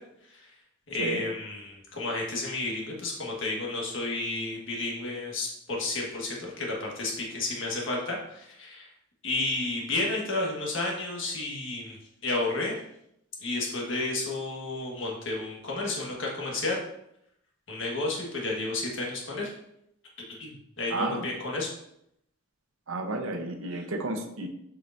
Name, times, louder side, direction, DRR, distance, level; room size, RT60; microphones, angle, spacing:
voice 1, 0.9-8.9 9.2-12.8 13.4-16.8 17.7-19.5 20.3-21.7, left 2 dB, 65° left, -2 dB, 1.5 m, -31 dB
voice 2, 20.9-21.3 22.9-24.5, right 2 dB, 75° right, 5 dB, 0.8 m, -32 dB
7.5 x 4.9 x 2.6 m, 0.77 s
head